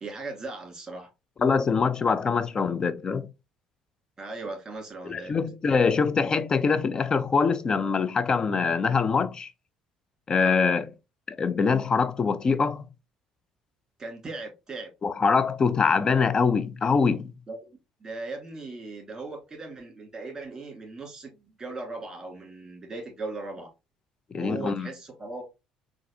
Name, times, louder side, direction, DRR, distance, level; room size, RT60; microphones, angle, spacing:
voice 1, 0.0-1.1 2.4-2.5 4.2-5.3 10.3-10.6 14.0-14.9 17.5-17.7 18.0-23.7 24.3-25.4, right 3 dB, 25° right, 2.0 m, -38 dB
voice 2, 1.4-3.3 5.1-9.5 10.3-10.9 11.3-12.8 15.0-17.3 24.3-24.9, left 5 dB, 35° left, 0.4 m, -24 dB
4.0 x 2.5 x 2.6 m
supercardioid pair, 80°, 2 cm